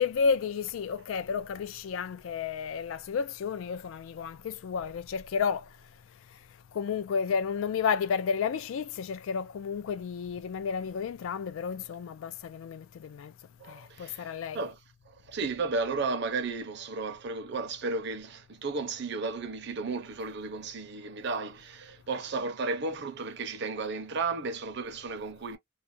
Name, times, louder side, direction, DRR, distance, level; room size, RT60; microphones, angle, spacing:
voice 1, 0.0-5.7 6.7-13.3 13.7-14.6, left 6 dB, 80° left, 0.3 m, -31 dB
voice 2, 13.6-14.8 15.1-25.6, right 3 dB, 60° right, 0.6 m, -34 dB
2.4 x 2.1 x 2.5 m
head